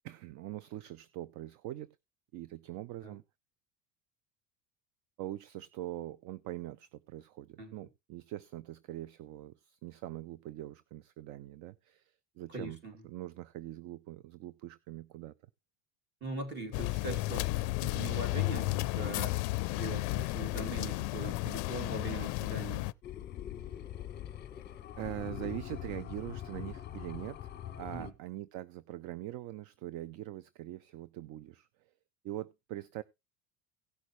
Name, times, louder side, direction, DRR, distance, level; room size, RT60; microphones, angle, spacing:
voice 1, 0.0-1.9 2.3-3.2 5.2-12.8 13.0-15.3 23.7-23.8 25.0-27.5 27.8-31.7 32.2-33.0, right 14 dB, 50° right, 0.5 m, -43 dB
voice 2, 12.5-12.9 16.2-19.4 19.7-22.9 27.9-28.1, right 2 dB, 30° right, 2.6 m, -41 dB
sound 1, 16.7-22.9, left 21 dB, 55° left, 0.5 m, -33 dB
sound 2, 23.0-28.1, left 11 dB, 25° left, 1.1 m, -43 dB
17.0 x 6.3 x 3.1 m
cardioid pair, 150°, 38 cm